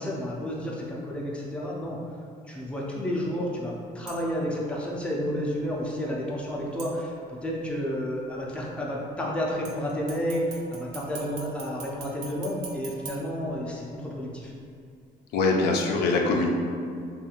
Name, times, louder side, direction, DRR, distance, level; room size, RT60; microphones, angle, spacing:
voice 1, 0.0-2.0 2.5-7.1 7.4-14.5, equal, 5° left, -4 dB, 0.4 m, -31 dB
sound 1, 4.1-4.5 6.8-7.5 9.6-14.0 14.5-14.6, right 4 dB, 75° right, 0.6 m, -44 dB
voice 2, 15.3-16.5, left 3 dB, 75° left, 0 dB, 0.4 m, -23 dB
2.6 x 2.4 x 2.8 m, 2.3 s
cardioid pair, 110°, 17 cm